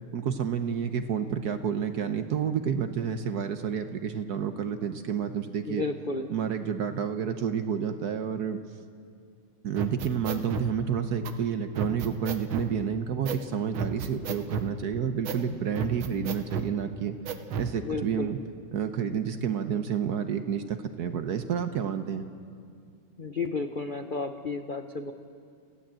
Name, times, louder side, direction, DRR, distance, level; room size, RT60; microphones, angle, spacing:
voice 1, 0.1-5.8 6.3-8.6 9.6-17.2 17.6-18.4 18.7-22.3, right 7 dB, 60° right, 8 dB, 1.2 m, -30 dB
voice 2, 5.7-6.3 17.8-18.3 23.2-25.1, left 3 dB, 60° left, 6 dB, 0.5 m, -32 dB
sound 1, 9.8-10.7 11.2-11.3 11.8-12.7 13.3-13.4 13.7-14.7 15.2-15.4 15.8-16.7 17.3-17.7, right 6 dB, 90° right, 1.9 m, -32 dB
26.0 x 15.5 x 7.6 m, 2.3 s
omnidirectional pair, 2.3 m